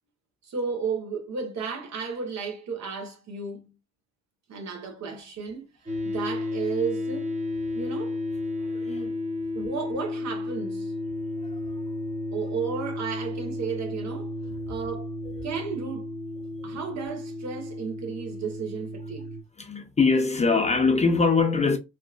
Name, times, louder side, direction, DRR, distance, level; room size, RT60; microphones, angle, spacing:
voice 1, 0.4-3.7 4.5-5.7 6.0-7.3 7.7-8.2 8.8-9.1 9.5-10.9 12.3-14.3 14.7-15.1 15.4-16.1 16.6-19.3, right 5 dB, 65° right, 1.0 m, -33 dB
sound 1, 5.9-19.4, left 2 dB, 25° right, 0.7 m, -33 dB
voice 2, 8.6-9.1 11.4-11.6 15.2-15.4 16.6-16.7 19.6-21.8, left 4 dB, 25° left, 0.4 m, -23 dB
2.8 x 2.3 x 2.3 m
cardioid pair, 90°, 30 cm